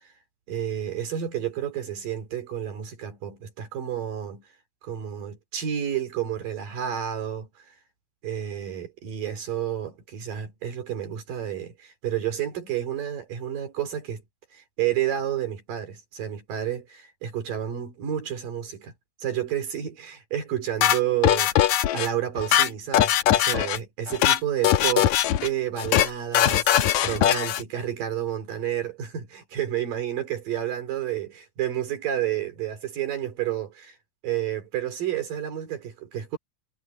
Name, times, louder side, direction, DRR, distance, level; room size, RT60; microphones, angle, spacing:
voice 1, 0.5-4.4 4.8-7.7 8.2-14.2 14.5-18.9 19.2-21.7 21.9-25.1 25.4-34.0 34.2-36.4, right 10 dB, 65° right, 4.6 m, -30 dB
sound 1, 20.8-22.1 22.4-23.8 24.1-24.4 24.6-25.5 25.8-26.1 26.3-27.6, left 12 dB, 70° left, 1.9 m, -21 dB
omnidirectional pair, 4.2 m